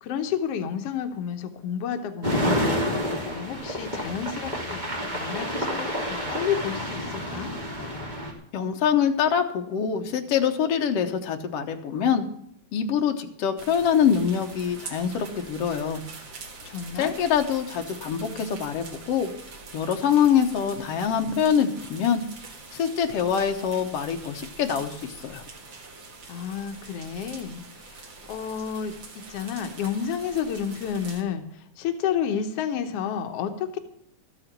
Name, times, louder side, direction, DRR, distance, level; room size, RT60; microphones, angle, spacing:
voice 1, 0.0-7.5 16.6-17.1 26.3-33.8, left 8 dB, 85° left, 6 dB, 1.3 m, -31 dB
sound 1, 2.2-8.3, equal, 15° right, 2.1 m, -29 dB
voice 2, 8.5-12.2 12.7-16.0 17.0-19.3 19.7-22.2 22.7-25.4, left 8 dB, 65° left, 5 dB, 1.5 m, -24 dB
sound 2, 13.6-31.2, right 3 dB, 45° right, 1.7 m, -44 dB
13.5 x 8.9 x 6.7 m, 0.70 s
omnidirectional pair, 4.1 m